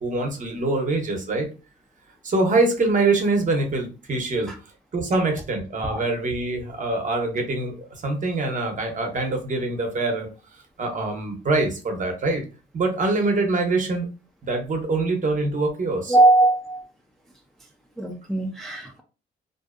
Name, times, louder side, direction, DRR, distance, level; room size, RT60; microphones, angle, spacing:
voice 1, 0.0-1.5 2.2-4.5 4.9-10.3 10.8-12.4 12.7-14.1 14.4-16.1, right 2 dB, 40° right, 4 dB, 0.8 m, -24 dB
voice 2, 16.1-16.9 18.0-19.0, right 2 dB, ahead, 2 dB, 0.4 m, -20 dB
2.6 x 2.1 x 2.4 m, 0.33 s
cardioid pair, 90°, 20 cm